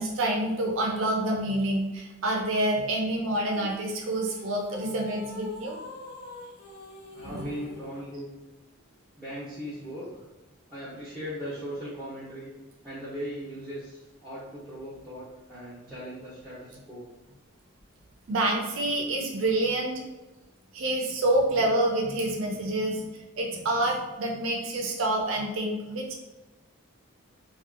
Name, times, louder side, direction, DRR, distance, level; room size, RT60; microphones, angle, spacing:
voice 1, 0.0-5.8 7.2-7.5 18.3-20.0 20.7-23.0 23.4-26.1, right 1 dB, 65° right, 0 dB, 0.5 m, -27 dB
sound 1, 3.5-8.1, left 2 dB, 90° left, 0.7 m, -45 dB
voice 2, 7.1-8.3 9.2-10.2 10.7-12.5 12.8-17.1, equal, ahead, -11 dB, 0.6 m, -38 dB
2.6 x 2.2 x 2.4 m, 1.1 s
head